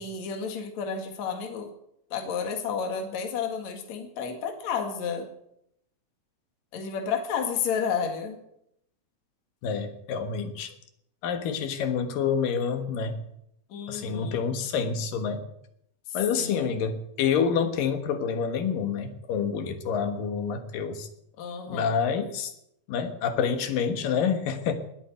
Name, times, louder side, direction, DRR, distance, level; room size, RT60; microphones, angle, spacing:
voice 1, 0.0-1.7 2.1-5.3 6.7-8.4 13.7-14.4 16.4-16.8 21.4-22.0, left 6 dB, 60° left, 4 dB, 3.1 m, -31 dB
voice 2, 9.6-10.7 11.2-13.2 13.9-15.4 16.1-21.1 21.7-22.5 22.9-24.7, left 6 dB, 90° left, 8 dB, 3.2 m, -28 dB
20.0 x 8.8 x 8.0 m, 0.76 s
omnidirectional pair, 3.8 m